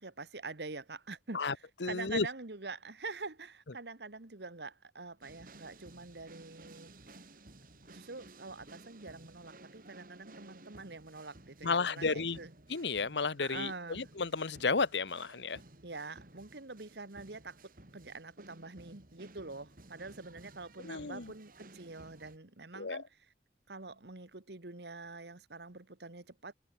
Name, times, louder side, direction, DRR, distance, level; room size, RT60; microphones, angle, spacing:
voice 1, 0.0-6.9 7.9-12.5 13.4-14.1 15.8-23.1 23.7-26.5, right 3 dB, 75° right, 1.7 m, -45 dB
voice 2, 1.8-2.3 11.6-12.4 12.7-15.6 20.8-21.3 22.8-23.0, left 4 dB, 85° left, 1.1 m, -32 dB
sound 1, 5.2-22.4, right 2 dB, 50° right, 2.8 m, -56 dB
head